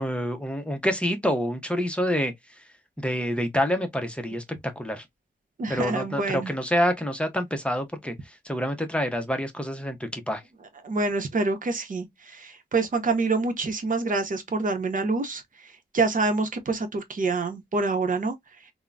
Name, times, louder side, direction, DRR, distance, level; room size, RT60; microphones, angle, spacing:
voice 1, 0.0-2.3 3.0-4.4 4.8-5.0 5.7-8.1 8.4-10.4, equal, 5° left, 0.6 m, -27 dB
voice 2, 5.6-6.5 10.8-12.1 12.3-15.4 15.9-18.4, right 3 dB, 50° right, 0.7 m, -26 dB
3.7 x 2.0 x 2.3 m
wide cardioid pair, 105°, 17 cm